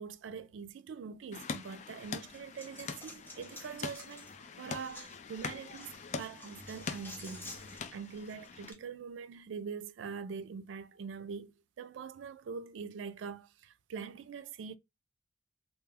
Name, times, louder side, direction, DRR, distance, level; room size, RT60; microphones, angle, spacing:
voice 1, 0.0-14.8, right 6 dB, 90° right, 0.3 m, -44 dB
sound 1, 1.3-8.7, left 5 dB, 40° left, 0.3 m, -44 dB
Coin (dropping), 2.0-8.7, left 1 dB, 10° left, 0.7 m, -52 dB
sound 2, 2.8-8.6, left 3 dB, 80° left, 0.7 m, -65 dB
2.3 x 2.2 x 3.3 m
head